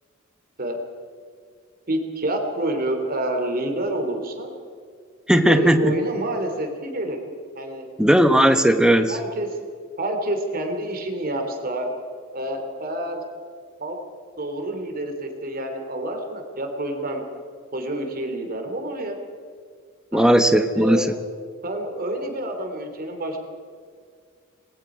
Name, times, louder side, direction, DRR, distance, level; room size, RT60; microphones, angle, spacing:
voice 1, 1.9-4.5 5.4-7.2 7.6-7.9 9.1-9.6 10.0-11.9 12.3-13.2 13.8-14.0 14.4-17.2 17.7-19.2 20.1-20.3 20.7-21.1 21.6-23.4, right 1 dB, 45° right, 4 dB, 2.9 m, -28 dB
voice 2, 5.3-5.9 8.0-9.2 20.1-21.1, equal, 5° right, 7 dB, 1.2 m, -17 dB
26.0 x 20.5 x 5.0 m, 2.1 s
head